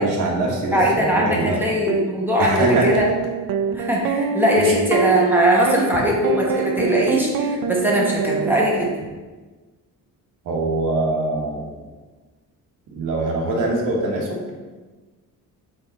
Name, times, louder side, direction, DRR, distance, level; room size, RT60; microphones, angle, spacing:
voice 1, 0.0-1.6 2.4-2.9 4.6-4.7 10.4-11.7 12.9-14.4, right 2 dB, 65° right, -1 dB, 1.4 m, -23 dB
voice 2, 0.7-3.1 3.7-8.9, equal, 5° right, -4 dB, 0.9 m, -20 dB
sound 1, 1.9-2.0 2.7-9.1, right 6 dB, 90° right, 0.5 m, -25 dB
7.1 x 3.5 x 4.0 m, 1.3 s
cardioid pair, 165°, 34 cm